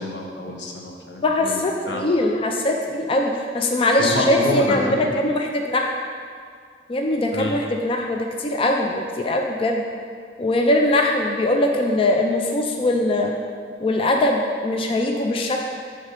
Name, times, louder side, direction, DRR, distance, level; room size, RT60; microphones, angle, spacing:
voice 1, 0.0-2.0 4.0-5.1 7.3-7.6, left 1 dB, 85° left, 1 dB, 0.9 m, -27 dB
voice 2, 1.2-5.9 6.9-9.9 10.4-13.3 13.8-15.6, left 1 dB, 30° left, 2 dB, 0.4 m, -21 dB
6.5 x 4.0 x 5.4 m, 2.1 s
head